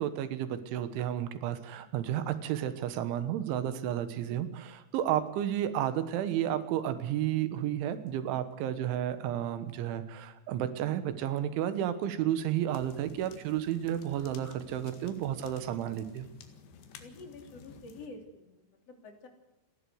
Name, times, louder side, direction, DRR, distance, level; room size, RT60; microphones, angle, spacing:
voice 1, 0.0-16.3, right 11 dB, 85° right, 11 dB, 3.7 m, -32 dB
sound 1, 12.7-18.1, left 6 dB, 75° left, 4.1 m, -53 dB
voice 2, 17.0-18.6 18.9-19.3, left 3 dB, 35° left, 4 dB, 3.6 m, -48 dB
29.5 x 11.5 x 7.9 m, 0.89 s
omnidirectional pair, 5.3 m